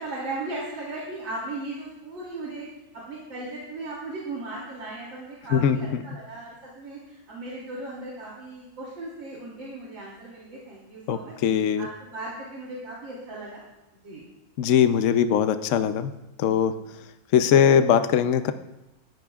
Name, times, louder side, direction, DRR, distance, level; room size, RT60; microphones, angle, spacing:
voice 1, 0.0-2.7 3.1-11.3 11.8-13.6 14.0-14.2, right 2 dB, 75° right, -5 dB, 3.6 m, -37 dB
voice 2, 5.5-6.0 11.1-11.9 14.6-16.1 16.4-16.7 17.3-18.5, left 8 dB, 60° left, 9 dB, 0.8 m, -21 dB
19.5 x 14.5 x 2.4 m, 0.98 s
omnidirectional pair, 2.1 m